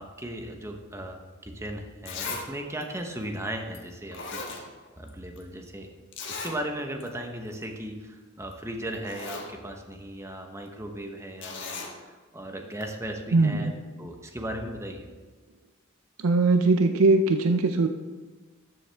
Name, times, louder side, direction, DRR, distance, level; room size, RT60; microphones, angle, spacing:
voice 1, 0.0-4.4 5.0-5.9 6.3-13.7 14.0-15.1, right 1 dB, 15° right, 3 dB, 0.9 m, -37 dB
Zipper (clothing), 1.5-1.6 2.1-2.5 2.8-2.9 3.7-3.8 4.1-5.1 5.4-5.5 6.1-6.6 7.0-7.1 7.4-7.6 8.5-8.6 8.9-9.5 11.4-11.9 12.8-12.9, left 4 dB, 60° left, 1.3 m, -37 dB
voice 2, 13.3-13.7 16.2-17.9, right 3 dB, 90° right, 7 dB, 0.6 m, -21 dB
13.0 x 7.1 x 3.4 m, 1.3 s
head